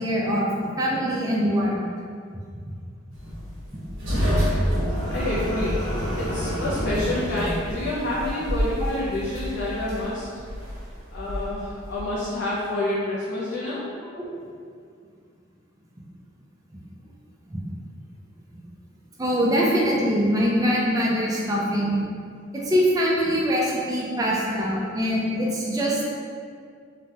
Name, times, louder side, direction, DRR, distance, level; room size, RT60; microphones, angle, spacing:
voice 1, 0.0-1.8 14.1-14.2 17.5-17.6 19.2-22.0 22.5-26.1, equal, 20° right, -4 dB, 0.4 m, -23 dB
sound 1, 3.1-12.2, equal, 70° right, 1.1 m, -28 dB
voice 2, 5.1-5.8 6.1-10.4 11.1-13.9, left 1 dB, 65° left, -7 dB, 0.5 m, -28 dB
3.2 x 2.2 x 2.8 m, 2.2 s
head